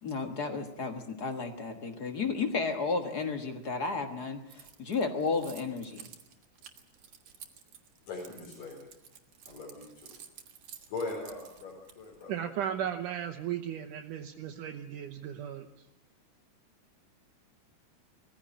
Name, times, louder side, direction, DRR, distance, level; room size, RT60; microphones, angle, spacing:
voice 1, 0.0-6.1, left 4 dB, 45° left, 6 dB, 1.4 m, -33 dB
Keys jangling, 4.5-12.2, right 8 dB, 60° right, 2.5 m, -52 dB
voice 2, 8.1-8.9 9.5-10.2 10.9-12.4, left 3 dB, 85° left, -3 dB, 6.2 m, -40 dB
voice 3, 12.3-15.7, right 9 dB, 75° right, 4 dB, 2.4 m, -36 dB
20.0 x 15.5 x 9.9 m, 0.86 s
omnidirectional pair, 3.8 m